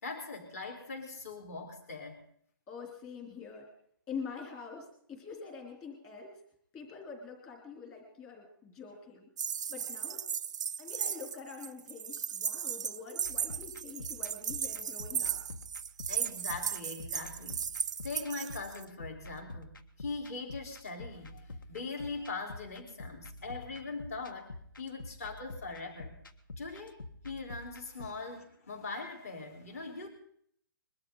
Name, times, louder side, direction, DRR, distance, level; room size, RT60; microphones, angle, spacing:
voice 1, 0.0-2.2 16.1-17.6 18.0-26.2 26.6-27.0 27.2-30.1, left 3 dB, 40° left, 3 dB, 4.4 m, -41 dB
voice 2, 2.7-3.7 4.1-6.4 6.7-9.3 9.7-10.2 10.8-15.4 28.0-28.1, left 5 dB, 15° left, 1 dB, 3.7 m, -45 dB
sound 1, 9.4-18.8, right 7 dB, 55° right, 0.5 m, -36 dB
sound 2, 13.2-28.1, left 2 dB, 65° left, 1.6 m, -48 dB
22.0 x 13.0 x 4.0 m, 0.65 s
hypercardioid pair, 170°, 12 cm